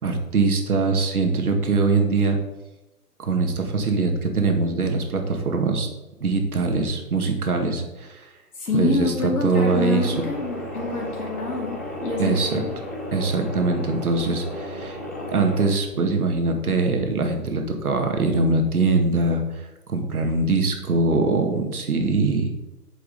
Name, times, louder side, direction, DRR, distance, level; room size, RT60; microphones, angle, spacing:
voice 1, 0.0-2.4 3.2-5.9 6.2-8.3 8.7-10.2 12.2-12.6 13.1-15.0 15.3-22.5, right 3 dB, 65° right, 4 dB, 2.0 m, -22 dB
voice 2, 8.6-12.8, left 3 dB, 70° left, -6 dB, 2.7 m, -27 dB
sound 1, 9.5-15.7, left 1 dB, 10° left, 0.6 m, -33 dB
8.7 x 6.6 x 4.1 m, 1.0 s
figure-of-eight pair, 150°, 48 cm